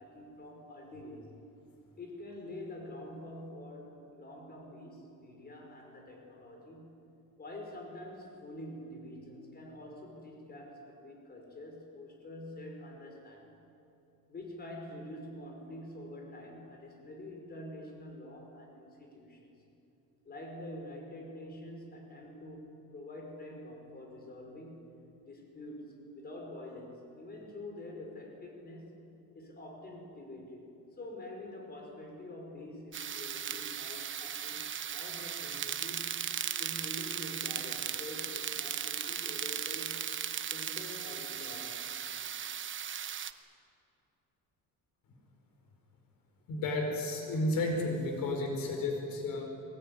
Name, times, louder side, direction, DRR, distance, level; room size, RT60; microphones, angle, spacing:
voice 1, 0.0-1.3 2.0-7.0 7.4-13.5 14.3-19.5 20.3-24.9 25.2-29.0 29.3-36.3 36.6-40.1 40.5-41.9, left 1 dB, 25° left, 1 dB, 5.2 m, -46 dB
sound 1, 32.9-43.3, right 9 dB, 35° right, 1.0 m, -37 dB
voice 2, 46.5-49.4, left 2 dB, 70° left, 3 dB, 4.8 m, -32 dB
23.0 x 20.5 x 9.9 m, 2.8 s
cardioid pair, 145°, 35 cm